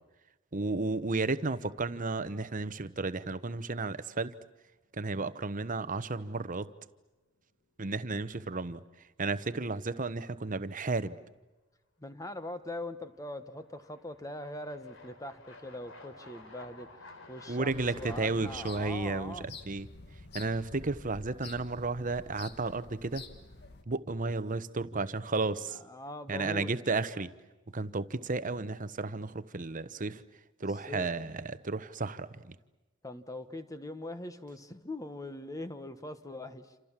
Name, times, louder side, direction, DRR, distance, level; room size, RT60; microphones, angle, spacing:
voice 1, 0.5-4.3 4.9-6.7 7.8-8.8 9.2-11.2 17.5-19.9 20.3-23.2 23.9-25.8 26.3-27.3 27.7-30.2 30.6-32.5, right 3 dB, 40° right, 1.0 m, -33 dB
sound 1, 0.8-1.5 1.9-2.0 4.8-4.9 6.3-6.5 6.8-6.9 12.3-12.4 13.1-18.8, left 2 dB, 80° left, 3.8 m, -52 dB
voice 2, 12.0-16.9 17.3-19.5 25.9-26.7 30.9-31.1 33.0-36.7, left 1 dB, 15° left, 1.4 m, -41 dB
sound 2, 17.6-23.8, left 3 dB, 55° left, 2.0 m, -49 dB
28.0 x 27.5 x 7.4 m
head